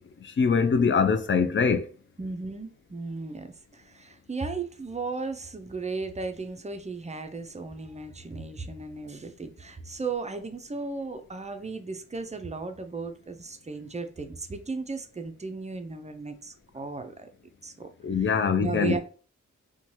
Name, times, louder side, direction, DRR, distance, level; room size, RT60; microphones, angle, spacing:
voice 1, 0.4-1.9 18.0-19.0, left 5 dB, 40° left, 0.4 m, -23 dB
voice 2, 2.2-17.3 17.6-18.3 18.6-19.0, right 4 dB, 25° right, 0.4 m, -35 dB
2.7 x 2.2 x 3.0 m
wide cardioid pair, 70°, 30 cm